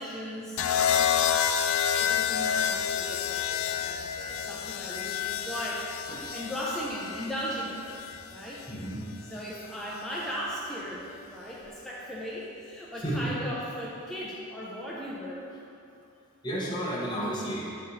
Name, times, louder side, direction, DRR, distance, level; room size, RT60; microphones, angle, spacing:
voice 1, 0.0-1.5 1.9-7.9 8.3-8.6 9.3-15.4, equal, ahead, -6 dB, 0.6 m, -37 dB
sound 1, 0.6-8.7 9.9-10.3, left 8 dB, 75° left, 0.3 m, -29 dB
voice 2, 8.7-9.0 11.6-11.7 13.0-13.4 16.4-17.7, right 1 dB, 20° left, -5 dB, 1.0 m, -33 dB
9.0 x 3.1 x 4.1 m, 2.6 s
head